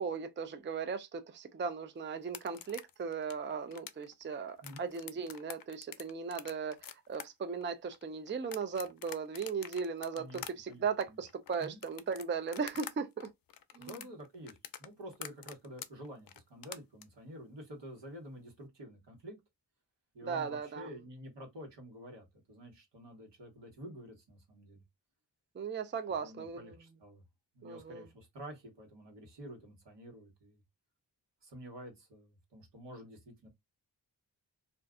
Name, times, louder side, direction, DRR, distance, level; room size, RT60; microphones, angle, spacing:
voice 1, 0.0-13.3 13.8-14.0 20.2-20.9 25.6-26.8 27.6-28.1, right 5 dB, 30° right, 0.4 m, -37 dB
sound 1, 2.2-12.9 13.2-17.0, left 9 dB, 55° left, 0.5 m, -47 dB
voice 2, 10.1-11.2 11.6-11.8 13.8-19.4 20.1-24.8 26.1-27.2 27.5-30.6 31.4-33.5, equal, 80° right, 1.3 m, -49 dB
2.5 x 2.3 x 3.6 m
cardioid pair, 65°, 42 cm